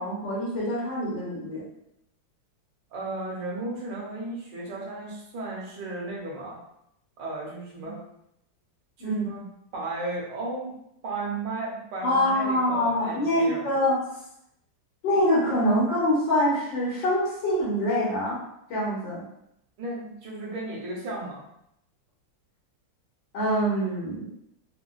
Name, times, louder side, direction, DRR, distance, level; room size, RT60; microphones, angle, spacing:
voice 1, 0.0-1.6 7.8-7.9 9.0-9.3 12.0-14.0 15.0-18.4 18.7-19.2 23.3-24.3, equal, 90° left, -6 dB, 1.8 m, -25 dB
voice 2, 2.9-6.6 7.2-8.0 9.0-9.5 9.7-10.7 11.0-13.6 19.8-21.4, right 2 dB, 80° right, -3 dB, 1.6 m, -34 dB
4.2 x 2.2 x 2.3 m, 0.77 s
omnidirectional pair, 2.0 m